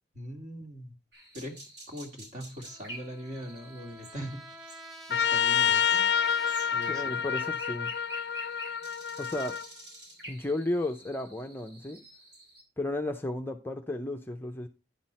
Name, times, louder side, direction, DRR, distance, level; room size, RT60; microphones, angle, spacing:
voice 1, 0.1-0.9 1.3-1.6 1.9-4.4 4.7-6.1 6.7-7.2, equal, 40° right, 2.0 m, -41 dB
sound 1, 1.1-12.6, equal, 75° right, 5.2 m, -48 dB
Trumpet, 2.6-7.8, right 2 dB, 25° right, 1.1 m, -48 dB
Trumpet 2, 5.1-9.6, left 8 dB, 65° left, 0.4 m, -28 dB
voice 2, 6.9-7.9 9.2-9.6 10.3-12.0 12.8-14.7, left 1 dB, 10° left, 0.5 m, -33 dB
10.5 x 6.0 x 4.2 m
head